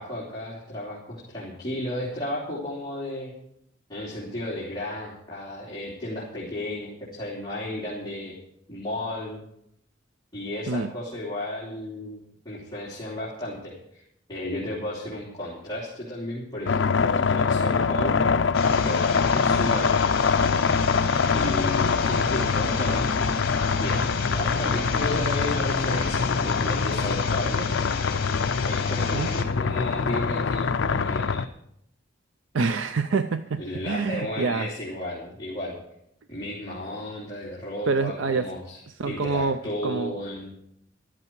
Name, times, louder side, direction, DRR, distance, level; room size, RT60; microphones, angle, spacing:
voice 1, 0.0-3.3 3.9-8.3 8.7-9.4 10.3-14.0 14.3-18.2 18.8-19.9 21.3-27.7 28.6-31.5 33.6-35.8 36.3-40.5, left 1 dB, 20° left, -7 dB, 3.3 m, -33 dB
sound 1, 16.7-31.5, left 5 dB, 70° left, 0.6 m, -24 dB
sound 2, 18.5-29.4, left 5 dB, 55° left, 2.3 m, -33 dB
voice 2, 32.5-34.7 37.9-38.5 39.0-40.1, right 4 dB, 75° right, 11 dB, 0.5 m, -26 dB
13.5 x 13.5 x 4.7 m, 0.77 s
head